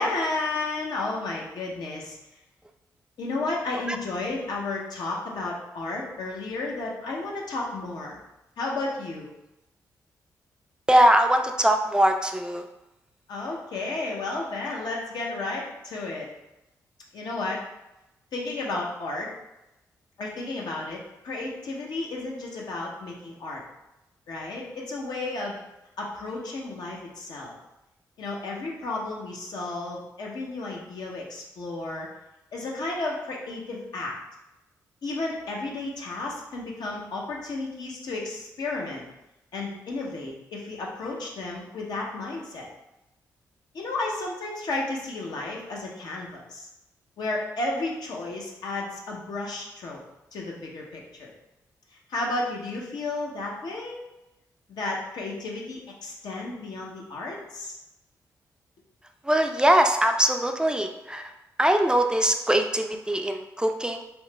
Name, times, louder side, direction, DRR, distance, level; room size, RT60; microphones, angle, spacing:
voice 1, 0.0-2.2 3.2-8.2 8.6-9.3 13.3-16.3 17.1-17.6 18.3-19.3 20.2-23.6 24.3-25.6 26.0-27.5 28.2-32.1 32.5-34.1 35.0-39.0 39.5-42.7 43.7-46.7 47.2-50.0 50.3-51.3 52.1-54.0 54.7-57.8, left 2 dB, 70° left, -2 dB, 0.7 m, -32 dB
voice 2, 10.9-12.6 59.2-61.3 61.6-64.0, right 1 dB, 10° right, 5 dB, 0.3 m, -22 dB
3.0 x 2.0 x 3.2 m, 0.93 s
supercardioid pair, 50°, 7 cm